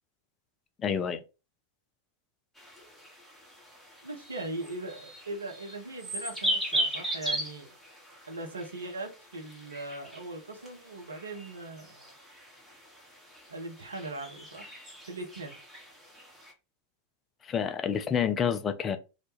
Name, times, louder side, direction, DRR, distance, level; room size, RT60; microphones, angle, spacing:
voice 1, 0.8-1.2 17.4-19.0, left 7 dB, 25° left, 0.3 m, -28 dB
sound 1, 2.6-16.5, right 1 dB, ahead, 0.8 m, -38 dB
voice 2, 4.0-7.7 8.3-12.1 13.5-14.7 15.1-15.6, right 2 dB, 75° right, 0.6 m, -40 dB
2.1 x 2.1 x 3.0 m
figure-of-eight pair, 90°, 0 cm